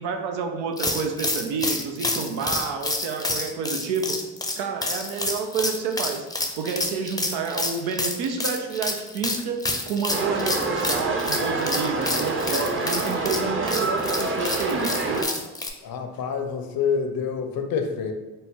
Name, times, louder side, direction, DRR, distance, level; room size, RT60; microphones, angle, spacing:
voice 1, 0.0-4.1 4.6-6.2 6.6-15.3, right 5 dB, 90° right, 4 dB, 0.5 m, -29 dB
sound 1, 0.8-15.7, left 2 dB, 10° left, 0.5 m, -29 dB
sound 2, 10.1-15.2, right 3 dB, 30° right, 0.7 m, -27 dB
voice 2, 15.8-18.1, left 6 dB, 60° left, 6 dB, 0.6 m, -27 dB
4.2 x 2.1 x 3.5 m, 1.1 s
supercardioid pair, 55°, 40 cm